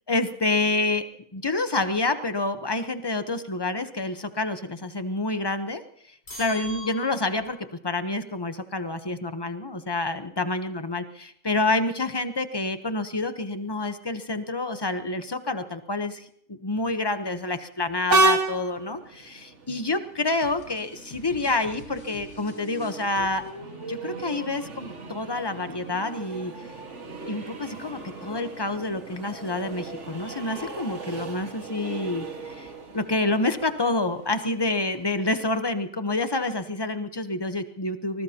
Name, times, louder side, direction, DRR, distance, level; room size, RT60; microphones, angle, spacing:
voice 1, 0.1-1.0 1.3-5.8 6.4-7.6 7.8-23.4 23.9-26.5 27.3-38.2, left 2 dB, 20° left, 9 dB, 0.8 m, -28 dB
sound 1, 6.3-7.6, left 2 dB, 40° left, 5.6 m, -40 dB
Train, 18.1-35.4, right 2 dB, 50° right, 2.0 m, -33 dB
sound 2, 20.3-28.1, left 3 dB, 85° left, 2.3 m, -51 dB
24.5 x 20.5 x 2.9 m, 0.68 s
omnidirectional pair, 1.6 m